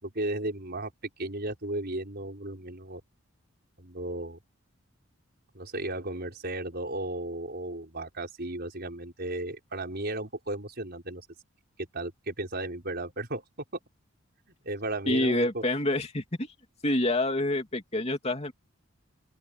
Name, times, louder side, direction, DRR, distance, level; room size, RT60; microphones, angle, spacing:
voice 1, 0.0-0.9 1.2-3.0 3.8-4.4 5.5-11.3 11.9-13.4 14.6-15.6, right 2 dB, 50° right, 5.7 m, -34 dB
voice 2, 15.1-16.5 16.8-18.5, left 1 dB, 30° left, 2.9 m, -27 dB
open air
head